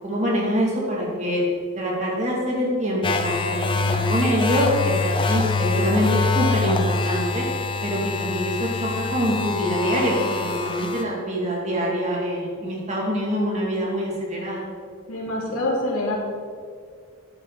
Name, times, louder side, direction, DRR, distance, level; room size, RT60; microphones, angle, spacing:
voice 1, 0.0-1.4 1.8-7.5 7.8-14.7, equal, 30° right, -3 dB, 2.7 m, -25 dB
sound 1, 3.0-11.0, left 4 dB, 25° left, 0.7 m, -25 dB
voice 2, 15.1-16.1, left 1 dB, 90° left, -3 dB, 2.9 m, -25 dB
13.0 x 9.9 x 4.1 m, 2.1 s
head